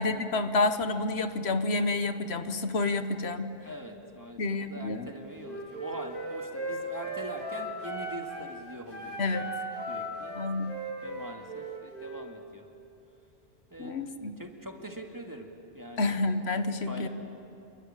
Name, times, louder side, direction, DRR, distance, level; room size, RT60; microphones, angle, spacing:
voice 1, 0.0-3.5 4.4-5.1 9.2-9.5 10.3-10.7 13.8-14.4 16.0-17.1, left 3 dB, 80° left, 10 dB, 1.4 m, -29 dB
voice 2, 3.6-9.6 9.9-10.4 11.0-12.7 13.7-13.9 14.4-15.5 15.7-16.2 16.9-17.1, equal, 20° right, 3 dB, 2.3 m, -43 dB
Wind instrument woodwind instrument, 5.4-8.5 8.9-12.3, right 1 dB, 55° left, 7.1 m, -37 dB
28.0 x 22.5 x 9.1 m, 2.8 s
omnidirectional pair, 1.1 m